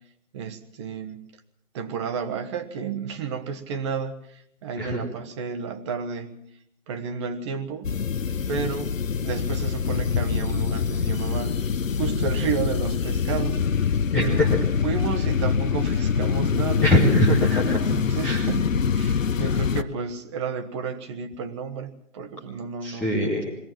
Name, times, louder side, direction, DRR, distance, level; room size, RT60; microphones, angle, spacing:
voice 1, 0.3-1.2 1.7-6.3 6.9-8.0 8.5-9.0 9.2-11.6 12.0-14.5 14.8-16.9 17.6-23.1, right 6 dB, 20° right, 10 dB, 1.2 m, -32 dB
sound 1, 7.8-19.8, left 6 dB, 70° left, 1.1 m, -24 dB
voice 2, 14.1-14.6 16.8-17.8 18.2-18.4 22.8-23.5, left 1 dB, 5° left, -4 dB, 0.7 m, -22 dB
22.5 x 16.5 x 7.5 m, 0.71 s
figure-of-eight pair, 145°, 41 cm